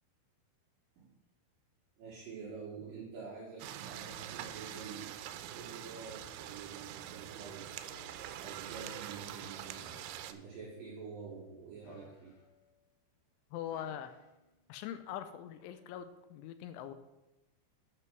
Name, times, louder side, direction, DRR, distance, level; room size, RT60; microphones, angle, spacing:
voice 1, 2.0-7.7 8.4-12.3, right 5 dB, 65° right, -4 dB, 2.3 m, -48 dB
sound 1, 3.6-10.3, right 11 dB, 85° right, 3.0 m, -45 dB
sound 2, 7.9-8.5 9.8-10.4 11.8-12.7 13.7-14.5 15.6-15.8, left 2 dB, 65° left, 2.0 m, -60 dB
voice 2, 13.5-14.2 14.7-16.9, left 10 dB, 85° left, 10 dB, 3.0 m, -42 dB
9.5 x 6.0 x 5.9 m, 0.97 s
omnidirectional pair, 5.5 m